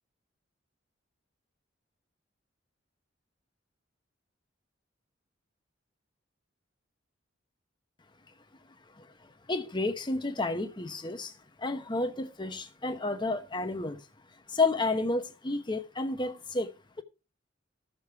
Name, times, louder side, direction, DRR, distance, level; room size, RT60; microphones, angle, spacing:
voice 1, 9.5-11.3 11.6-14.0 14.5-17.0, left 3 dB, 25° left, 1.0 m, -31 dB
14.0 x 6.9 x 4.7 m
head